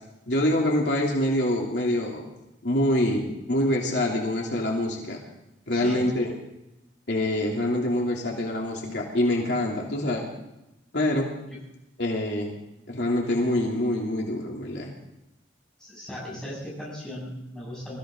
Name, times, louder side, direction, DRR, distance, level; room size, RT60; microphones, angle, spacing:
voice 1, 0.3-2.2 2.6-5.2 5.7-6.3 7.1-10.2 10.9-11.3 12.0-12.5 12.9-14.9, left 1 dB, 65° left, -1 dB, 3.1 m, -25 dB
voice 2, 5.7-6.1 11.5-11.6 15.8-18.0, equal, 5° left, -5 dB, 7.4 m, -37 dB
23.5 x 15.0 x 3.9 m, 0.93 s
head